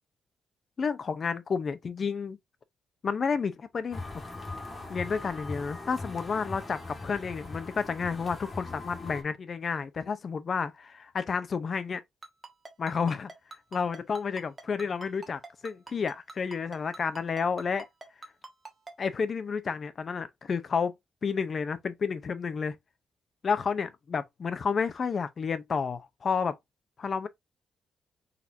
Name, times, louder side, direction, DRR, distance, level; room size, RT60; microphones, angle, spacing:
voice 1, 0.8-2.4 3.0-4.0 4.9-12.0 12.8-13.3 13.7-17.9 19.0-20.9 21.2-22.8 23.4-26.6 27.0-27.3, left 5 dB, 40° left, 0.6 m, -31 dB
sound 1, 3.9-9.2, left 2 dB, 25° left, 1.4 m, -40 dB
Ringtone, 12.2-18.9, right 3 dB, 20° right, 1.1 m, -44 dB
4.3 x 4.1 x 2.6 m
cardioid pair, 135°, 0 cm